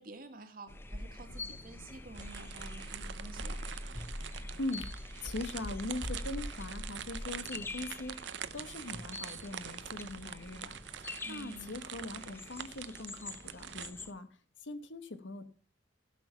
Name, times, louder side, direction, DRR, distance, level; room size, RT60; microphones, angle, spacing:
voice 1, 0.0-3.7 11.2-11.8, right 2 dB, 45° right, 7 dB, 1.6 m, -50 dB
sound 1, 0.7-14.1, left 1 dB, 10° left, 0.5 m, -44 dB
sound 2, 1.5-7.5, left 1 dB, 50° left, 3.1 m, -63 dB
sound 3, 2.1-13.9, right 9 dB, 65° right, 0.6 m, -45 dB
voice 2, 4.6-14.3 14.6-15.4, left 2 dB, 70° left, 11 dB, 1.1 m, -41 dB
16.0 x 6.0 x 5.6 m, 0.42 s
head